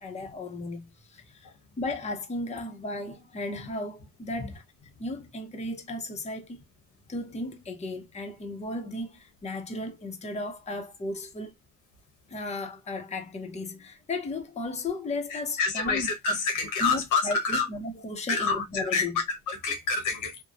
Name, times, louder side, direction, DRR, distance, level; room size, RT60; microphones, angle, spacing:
voice 1, 0.0-4.6 5.0-6.6 7.1-11.5 12.3-16.4 16.8-19.2, left 2 dB, 20° left, 0.7 m, -35 dB
voice 2, 15.3-17.7 18.3-20.4, left 4 dB, 85° left, 1.1 m, -28 dB
3.0 x 2.1 x 2.4 m
cardioid pair, 90°, 30 cm